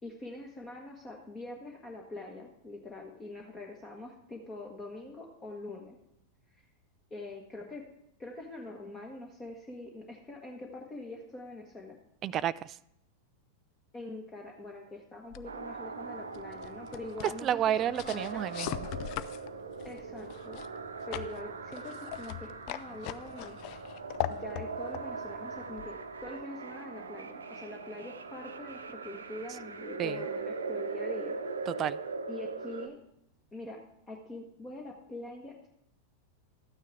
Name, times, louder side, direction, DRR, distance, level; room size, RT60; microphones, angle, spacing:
voice 1, 0.0-6.0 7.1-7.8 8.2-12.0 13.9-18.5 19.8-20.6 21.1-23.6 24.3-26.0 26.2-31.3 32.3-33.0 33.5-33.8 34.1-35.7, left 2 dB, 20° left, 1.5 m, -44 dB
voice 2, 12.2-12.8 17.4-18.9 30.0-30.2 31.7-32.0, right 10 dB, 30° right, 0.3 m, -31 dB
sound 1, 15.3-26.4, left 14 dB, 45° left, 0.5 m, -41 dB
sound 2, 15.4-32.9, right 4 dB, 70° right, 0.8 m, -40 dB
13.0 x 9.2 x 3.7 m
figure-of-eight pair, 90°, 0 cm